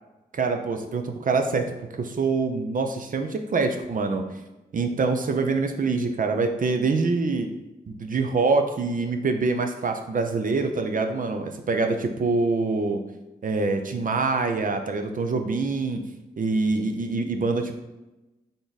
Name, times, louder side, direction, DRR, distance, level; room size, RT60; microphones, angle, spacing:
voice 1, 0.3-1.6 1.9-4.2 4.7-7.5 8.0-13.0 13.4-16.0 16.4-17.7, right 3 dB, 50° right, 6 dB, 0.6 m, -25 dB
3.7 x 3.5 x 4.0 m, 1.0 s
supercardioid pair, 45°, 18 cm